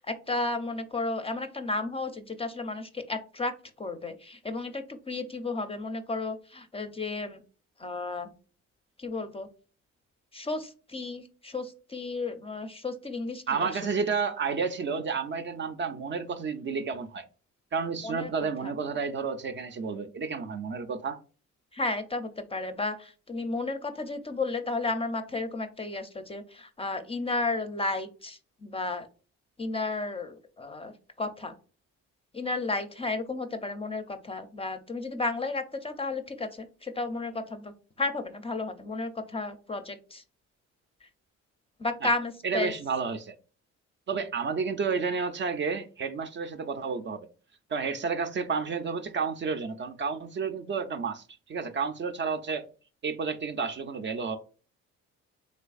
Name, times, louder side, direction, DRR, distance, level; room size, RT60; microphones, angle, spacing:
voice 1, 0.0-3.5 3.8-7.4 7.8-8.3 9.0-9.5 10.3-13.9 18.0-18.3 18.6-18.7 21.7-29.1 29.6-31.6 32.3-40.2 41.0-41.1 41.8-42.7, left 3 dB, 20° left, 0.5 m, -33 dB
voice 2, 13.5-17.3 17.7-21.2 42.0-42.1 42.4-43.3 44.1-47.3 47.7-52.7 53.0-54.4, right 5 dB, 40° right, 0.4 m, -31 dB
3.3 x 3.2 x 2.3 m
cardioid pair, 90°, 30 cm